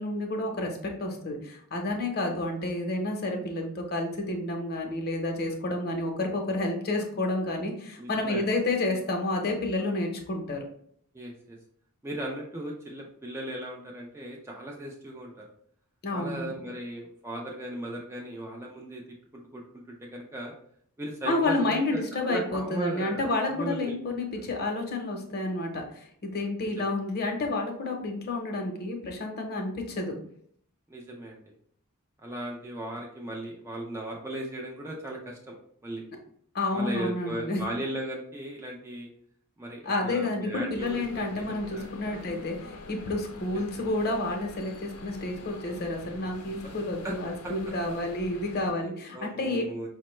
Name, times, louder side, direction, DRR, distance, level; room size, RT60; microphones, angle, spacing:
voice 1, 0.0-10.6 16.0-16.5 21.3-30.2 36.5-37.6 39.8-49.6, left 2 dB, 45° left, 2 dB, 0.7 m, -30 dB
voice 2, 8.0-8.5 11.1-11.6 12.0-15.5 16.1-19.0 19.5-19.6 19.9-20.5 21.0-24.0 26.6-26.9 30.9-31.4 32.2-35.5 35.8-36.0 36.7-39.1 39.6-42.3 46.6-46.7 47.0-47.1 47.4-47.5 49.1-49.9, right 1 dB, 10° right, -1 dB, 0.4 m, -37 dB
sound 1, 40.8-48.7, left 3 dB, 85° left, 0.5 m, -45 dB
5.1 x 2.1 x 3.1 m, 0.64 s
head